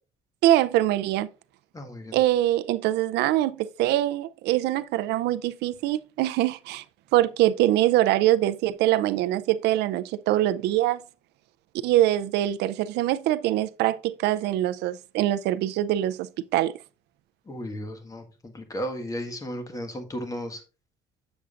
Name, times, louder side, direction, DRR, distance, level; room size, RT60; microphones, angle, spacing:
voice 1, 0.4-1.3 2.1-6.8 7.1-11.0 11.8-16.7, right 14 dB, 80° right, 0.5 m, -23 dB
voice 2, 1.7-2.2 17.5-20.6, equal, 20° left, 1.5 m, -34 dB
7.5 x 7.0 x 2.5 m
cardioid pair, 110°, 17 cm